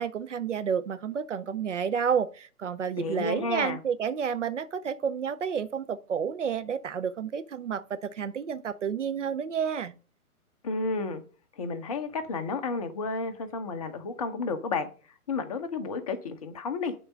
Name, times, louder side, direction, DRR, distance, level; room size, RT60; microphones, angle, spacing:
voice 1, 0.0-9.9, right 7 dB, 55° right, 0.7 m, -30 dB
voice 2, 3.0-3.8 10.6-11.2 11.6-14.9 15.3-16.9, left 3 dB, 25° left, 0.7 m, -31 dB
8.8 x 3.9 x 5.1 m
figure-of-eight pair, 130°, 45 cm